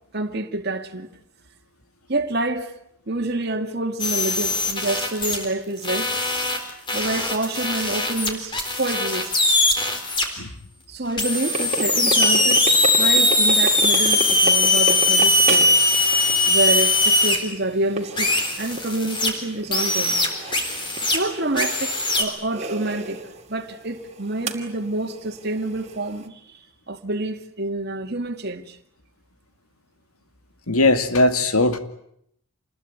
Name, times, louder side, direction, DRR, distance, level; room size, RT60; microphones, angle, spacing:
voice 1, 0.1-1.1 2.1-2.7 3.1-6.1 6.9-9.3 10.9-12.7 12.9-15.9 16.2-20.2 21.0-23.2 23.5-28.8, right 2 dB, 50° right, 2.2 m, -27 dB
sound 1, 4.0-5.4 5.8-10.2 11.2-17.4 18.2-19.3 19.7-21.2 21.6-22.2, left 2 dB, 20° left, 4.1 m, -20 dB
sound 2, 11.5-26.3, right 2 dB, 30° right, 2.6 m, -34 dB
voice 2, 30.7-31.8, left 2 dB, 90° left, 2.3 m, -19 dB
28.0 x 21.5 x 9.5 m
head